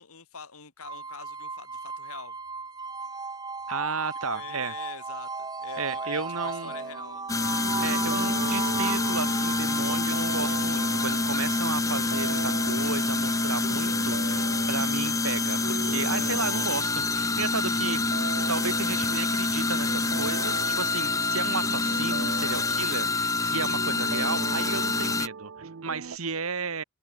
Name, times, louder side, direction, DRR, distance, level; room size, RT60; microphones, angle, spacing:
voice 1, 0.0-2.4 4.3-7.6, left 6 dB, 80° left, 2.2 m, -45 dB
sound 1, 0.8-15.7, right 4 dB, 20° right, 1.8 m, -37 dB
voice 2, 3.7-4.7 5.8-6.7 7.8-18.0 18.5-26.8, right 4 dB, 75° right, 2.1 m, -33 dB
sound 2, 6.6-26.2, right 5 dB, 60° right, 0.6 m, -40 dB
sound 3, 7.3-25.3, left 3 dB, 15° left, 0.6 m, -27 dB
open air
head